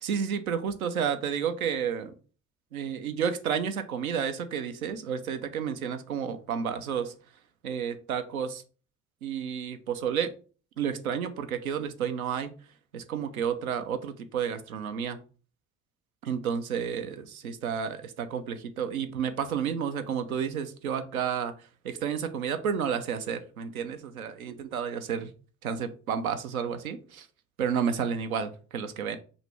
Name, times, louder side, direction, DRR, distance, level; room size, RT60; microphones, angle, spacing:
voice 1, 0.0-2.1 2.7-7.1 7.6-8.6 9.2-10.3 10.8-12.5 12.9-15.2 16.2-25.3 25.6-27.3 27.6-29.2, right 7 dB, 85° right, 9 dB, 0.5 m, -31 dB
4.9 x 2.6 x 3.0 m, 0.38 s
figure-of-eight pair, 50°, 41 cm